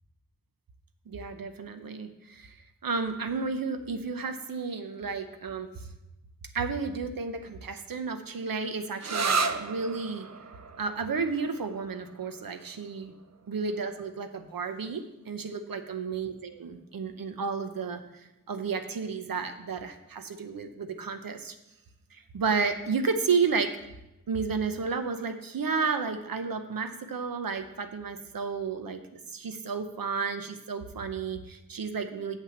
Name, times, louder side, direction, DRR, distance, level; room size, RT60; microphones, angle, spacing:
voice 1, 1.1-2.6 2.8-5.9 6.5-10.3 10.8-13.1 13.5-21.6 22.1-23.8 24.3-32.4, right 5 dB, 90° right, 8 dB, 0.9 m, -32 dB
sound 1, 9.0-16.4, right 4 dB, 50° right, 0.7 m, -35 dB
8.0 x 5.8 x 7.2 m, 0.92 s
wide cardioid pair, 60°, 34 cm